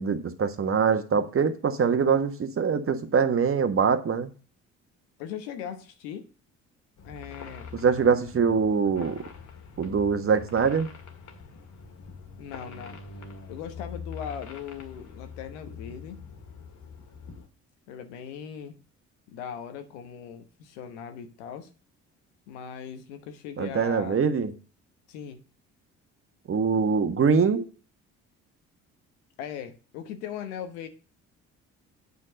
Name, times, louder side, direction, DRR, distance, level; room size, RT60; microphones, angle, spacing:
voice 1, 0.0-4.3 7.7-9.2 9.8-10.9 23.6-24.5 26.5-27.7, right 6 dB, 40° right, 1.4 m, -23 dB
voice 2, 5.2-6.3 7.0-7.7 12.4-13.0 13.5-16.2 17.9-18.7 19.3-21.7 22.5-24.2 25.1-25.4 29.4-30.9, left 8 dB, 90° left, 1.2 m, -39 dB
sound 1, 7.0-17.5, left 5 dB, 60° left, 1.9 m, -44 dB
8.4 x 4.6 x 5.2 m
supercardioid pair, 65°, 34 cm